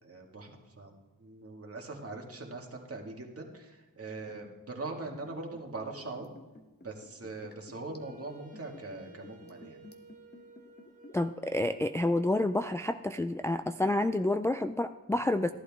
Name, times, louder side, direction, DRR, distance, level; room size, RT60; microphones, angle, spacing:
voice 1, 0.0-6.3 6.8-9.8, right 3 dB, 40° right, 1 dB, 2.1 m, -42 dB
Liquid, 5.2-11.4 11.6-11.7, left 2 dB, 30° left, 1.3 m, -53 dB
Wind instrument woodwind instrument, 8.0-12.9, right 2 dB, 20° right, 1.9 m, -57 dB
voice 2, 11.1-15.5, left 2 dB, 10° left, 7 dB, 0.3 m, -29 dB
15.5 x 11.5 x 3.6 m, 1.1 s
wide cardioid pair, 100°, 34 cm